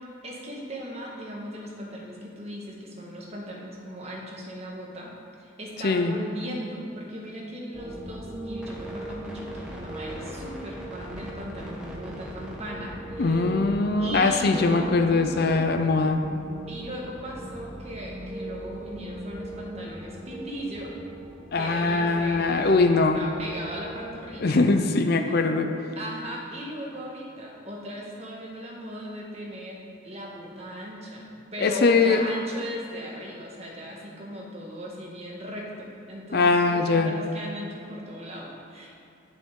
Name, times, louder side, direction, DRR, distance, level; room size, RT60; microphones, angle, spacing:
voice 1, 0.2-5.1 5.4-13.6 14.0-15.7 16.7-21.0 21.5-22.9 23.1-24.6 25.1-25.4 25.9-39.0, equal, 30° right, -3 dB, 1.6 m, -38 dB
voice 2, 5.8-6.2 13.2-16.2 21.5-23.2 24.4-25.7 31.6-32.2 36.3-37.1, left 3 dB, 50° left, 5 dB, 0.5 m, -21 dB
sound 1, 7.7-24.4, right 1 dB, 5° right, 1.2 m, -39 dB
12.0 x 7.1 x 3.8 m, 2.7 s
head